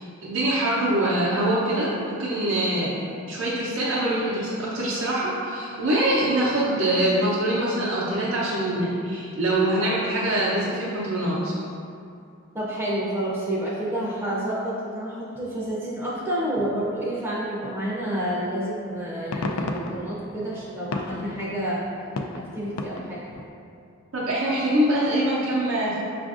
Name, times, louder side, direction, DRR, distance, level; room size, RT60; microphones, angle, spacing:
voice 1, 0.0-2.9 3.3-11.5 24.1-26.0, right 1 dB, 70° right, -8 dB, 0.6 m, -24 dB
voice 2, 12.5-21.8 22.3-23.2, right 1 dB, 10° right, -7 dB, 0.5 m, -29 dB
sound 1, 18.2-18.4 18.9-23.5, left 2 dB, 85° left, 0.3 m, -34 dB
5.8 x 2.5 x 2.4 m, 2.5 s
head